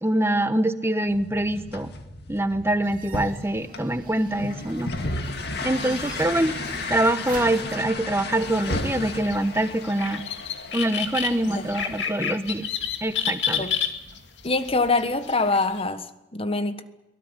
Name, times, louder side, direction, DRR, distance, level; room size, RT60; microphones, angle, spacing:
voice 1, 0.0-1.9 2.3-4.9 5.6-6.5 6.9-10.2 10.7-12.7 13.0-13.7, right 1 dB, 15° right, 1.3 m, -24 dB
sound 1, 1.1-12.1, left 2 dB, 60° left, 2.4 m, -34 dB
sound 2, 2.8-7.8, right 4 dB, 50° right, 2.5 m, -43 dB
sound 3, 8.3-15.8, left 8 dB, 85° left, 2.2 m, -31 dB
voice 2, 14.4-16.8, left 3 dB, 30° left, 1.4 m, -25 dB
23.5 x 18.0 x 9.9 m
head